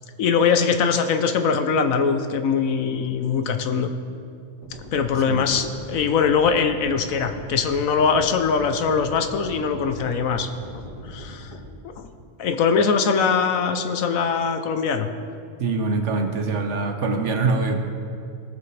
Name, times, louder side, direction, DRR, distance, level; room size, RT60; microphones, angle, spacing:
voice 1, 0.2-3.9 4.9-10.5 10.7-11.5 11.8-12.1 12.4-15.1, left 6 dB, 75° left, 7 dB, 1.1 m, -22 dB
sound 1, 4.6-11.6, equal, 20° right, 2.6 m, -40 dB
voice 2, 15.6-17.8, right 3 dB, 60° right, 4 dB, 1.2 m, -24 dB
19.5 x 7.3 x 3.3 m, 2.4 s
omnidirectional pair, 1.5 m